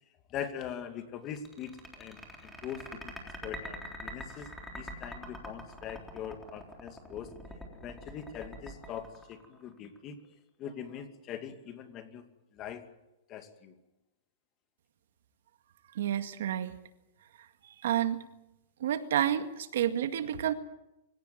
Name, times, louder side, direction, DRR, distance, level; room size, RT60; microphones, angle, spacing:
voice 1, 0.3-3.1 3.4-4.5 4.7-7.3 7.7-10.2 10.6-12.2 12.5-12.8 13.3-13.7, left 8 dB, 25° left, 8 dB, 2.4 m, -42 dB
sound 1, 1.4-10.0, equal, 5° left, 3.6 m, -44 dB
voice 2, 16.0-16.7 17.6-18.2 18.8-20.5, right 10 dB, 70° right, 9 dB, 2.0 m, -30 dB
25.5 x 17.0 x 9.4 m, 0.92 s
supercardioid pair, 165°, 0 cm